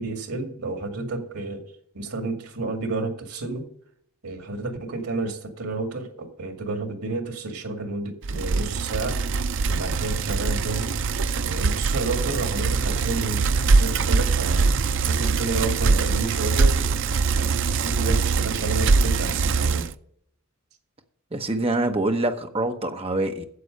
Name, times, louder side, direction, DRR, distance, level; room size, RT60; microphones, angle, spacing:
voice 1, 0.0-1.6 1.9-3.7 4.2-9.2 9.7-10.9 11.4-14.7 15.1-16.7 17.4-19.9, right 3 dB, 85° right, 2.2 m, -31 dB
Bicycle, 8.2-19.9, right 4 dB, 55° right, 0.4 m, -23 dB
voice 2, 21.3-23.5, right 2 dB, 25° right, 0.9 m, -25 dB
9.6 x 7.7 x 6.6 m
head